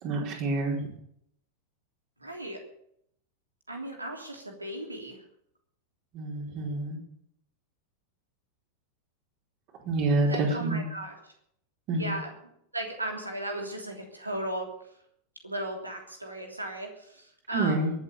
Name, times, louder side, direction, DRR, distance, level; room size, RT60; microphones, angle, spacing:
voice 1, 0.0-0.8 6.1-7.0 9.8-10.8 11.9-12.1 17.5-17.9, right 2 dB, 40° right, 0 dB, 4.6 m, -27 dB
voice 2, 2.2-2.6 3.7-5.2 10.3-11.1 11.9-12.3 12.7-15.0 15.4-17.9, right 1 dB, 85° right, 2 dB, 3.2 m, -36 dB
23.0 x 8.3 x 7.0 m, 0.71 s
figure-of-eight pair, 90°, 0 cm